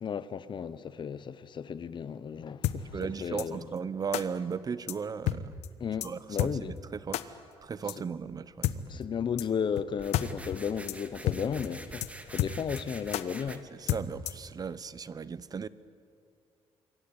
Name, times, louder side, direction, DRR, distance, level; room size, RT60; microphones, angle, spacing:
voice 1, 0.0-3.7 5.8-6.8 8.9-13.6, left 7 dB, 45° left, 1.1 m, -34 dB
sound 1, 2.6-2.8 3.4-3.5 4.1-4.2 4.9-5.0 5.3-5.4 5.6-5.7 6.0-6.1 6.4-6.5 7.1-7.2 7.9-8.0 8.6-8.8 9.4-9.5 9.8-9.9 10.1-10.3 10.5-10.6 10.9-11.0 11.3-11.4 11.6-11.7 12.0-12.1 12.4-12.8 13.1-13.2 13.9-14.5, left 13 dB, 90° left, 1.1 m, -29 dB
voice 2, 2.9-5.6 6.0-8.9 13.5-15.7, right 6 dB, 35° right, 1.0 m, -37 dB
sound 2, 9.9-13.6, right 1 dB, 10° right, 2.1 m, -47 dB
27.5 x 23.5 x 9.0 m
cardioid pair, 100°, 11 cm